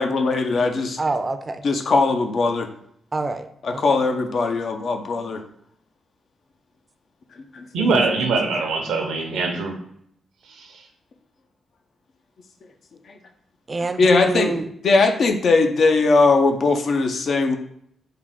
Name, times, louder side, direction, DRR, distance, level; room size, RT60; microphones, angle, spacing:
voice 1, 0.0-1.0 1.6-2.7 3.6-5.4 7.5-7.6 14.0-14.6 14.8-17.6, left 3 dB, 60° left, 5 dB, 0.5 m, -19 dB
voice 2, 1.0-1.6 3.1-3.8 7.8-7.9 13.7-14.7, right 3 dB, 30° right, 8 dB, 0.4 m, -26 dB
voice 3, 7.7-9.7 10.5-10.8, right 3 dB, 85° right, 3 dB, 0.6 m, -23 dB
3.7 x 2.3 x 3.5 m, 0.69 s
cardioid pair, 65°, 0 cm